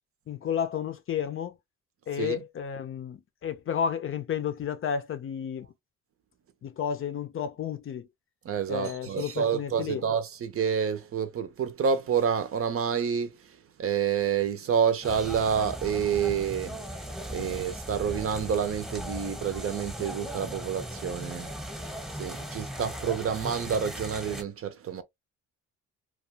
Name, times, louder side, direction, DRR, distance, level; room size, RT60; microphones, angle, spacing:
voice 1, 0.3-1.5 2.1-5.7 6.6-8.1 8.7-10.0 17.4-17.5, left 8 dB, 45° left, 0.5 m, -32 dB
voice 2, 8.4-13.4 13.8-16.8 17.3-21.5 22.2-25.0, right 7 dB, 50° right, 0.6 m, -28 dB
sound 1, 15.0-24.4, equal, ahead, 0.9 m, -38 dB
2.4 x 2.3 x 2.8 m
cardioid pair, 90°, 30 cm